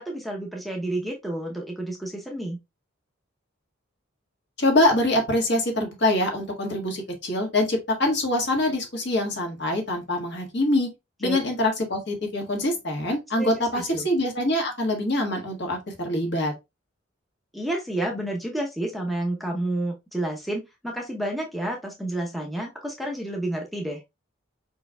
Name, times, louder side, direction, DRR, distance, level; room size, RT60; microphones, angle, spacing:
voice 1, 0.0-2.6 11.2-11.4 13.4-14.1 17.5-24.0, right 1 dB, ahead, 0.7 m, -30 dB
voice 2, 4.6-10.9 11.2-16.5, left 1 dB, 55° left, 1.6 m, -24 dB
4.9 x 4.5 x 2.2 m
head